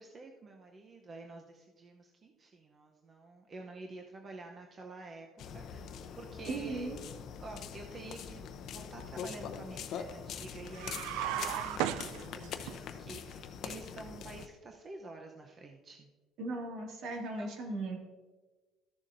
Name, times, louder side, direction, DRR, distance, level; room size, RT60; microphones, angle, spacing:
voice 1, 0.0-5.3 5.5-6.9 7.4-16.1 17.4-17.5, right 3 dB, 30° right, 2 dB, 0.7 m, -49 dB
sound 1, 5.4-14.5, left 7 dB, 55° left, 0.7 m, -43 dB
voice 2, 6.5-7.0 16.4-18.0, right 2 dB, 65° right, 0 dB, 2.1 m, -37 dB
sound 2, 10.7-12.8, right 11 dB, 90° right, 0.4 m, -35 dB
14.0 x 7.1 x 2.6 m, 1.3 s
cardioid pair, 135°, 0 cm